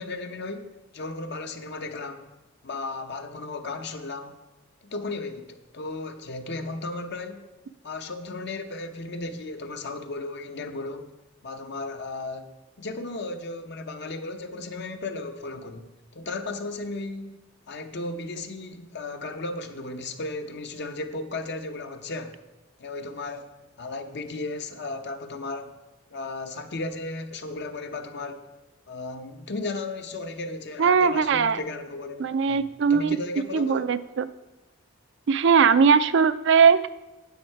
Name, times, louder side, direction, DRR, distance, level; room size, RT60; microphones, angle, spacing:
voice 1, 0.0-2.3 2.6-4.4 4.8-7.5 7.8-11.1 11.4-12.5 12.8-22.4 22.8-23.5 23.8-25.7 26.1-28.5 28.9-33.9, left 2 dB, 60° left, 0.8 m, -35 dB
voice 2, 30.8-31.6 32.2-33.2 33.5-34.3 35.3-36.9, right 6 dB, 65° right, 0.4 m, -20 dB
9.3 x 7.9 x 4.6 m
head